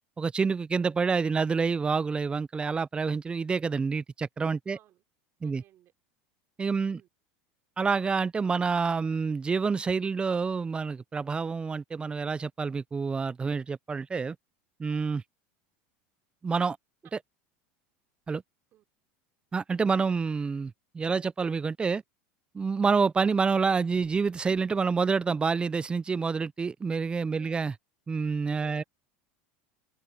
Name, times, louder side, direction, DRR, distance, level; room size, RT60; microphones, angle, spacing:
voice 1, 0.2-4.8 5.4-5.6 6.6-7.0 7.8-14.4 14.8-15.2 16.4-16.8 18.3-18.4 19.5-22.0 22.5-27.7 28.1-28.8, right 5 dB, 20° right, 0.4 m, -28 dB
voice 2, 4.7-5.0 5.4-5.9 6.9-7.1 17.0-17.1 18.7-18.8 27.3-27.6 28.6-28.8, right 13 dB, 50° right, 3.3 m, -57 dB
supercardioid pair, 105°, 6 cm